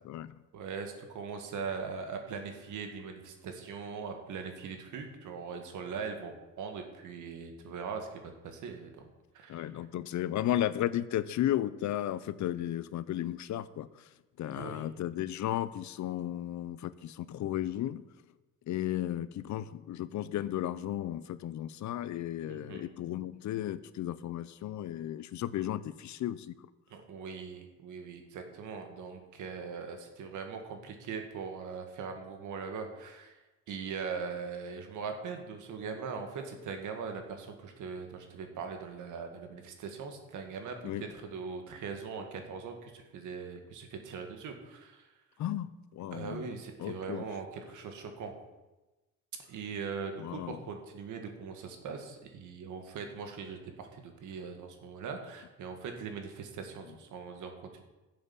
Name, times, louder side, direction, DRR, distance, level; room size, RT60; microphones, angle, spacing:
voice 1, 0.5-9.6 14.6-14.9 22.5-22.8 26.9-33.4 33.7-45.1 46.1-48.4 49.5-57.8, right 5 dB, 80° right, 5 dB, 2.1 m, -41 dB
voice 2, 9.5-14.0 14.4-18.0 18.7-26.5 40.8-41.0 45.4-46.4 46.8-47.2 50.2-50.6, left 12 dB, 70° left, 16 dB, 0.7 m, -34 dB
11.0 x 7.8 x 7.3 m, 1.1 s
cardioid pair, 90°, 30 cm